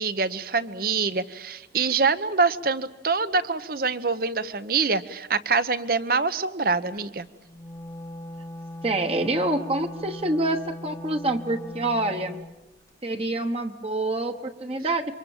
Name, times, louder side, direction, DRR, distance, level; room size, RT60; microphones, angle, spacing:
voice 1, 0.0-7.3, right 4 dB, 55° right, 14 dB, 1.0 m, -25 dB
Wind instrument woodwind instrument, 7.4-12.5, left 1 dB, 15° left, 1.0 m, -39 dB
voice 2, 8.8-12.4 13.0-15.2, right 2 dB, 35° right, 5 dB, 1.2 m, -26 dB
27.5 x 24.5 x 7.3 m, 0.99 s
head